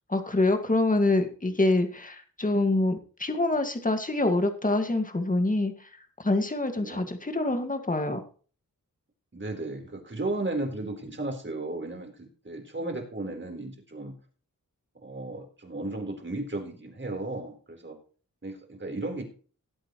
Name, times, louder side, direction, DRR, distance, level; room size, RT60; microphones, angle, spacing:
voice 1, 0.1-5.7 6.2-8.2, left 2 dB, 25° left, 6 dB, 2.0 m, -25 dB
voice 2, 9.3-14.1 15.0-18.0 18.4-19.2, right 2 dB, 35° right, 2 dB, 4.1 m, -34 dB
18.5 x 8.3 x 3.1 m, 0.39 s
wide cardioid pair, 90°, 34 cm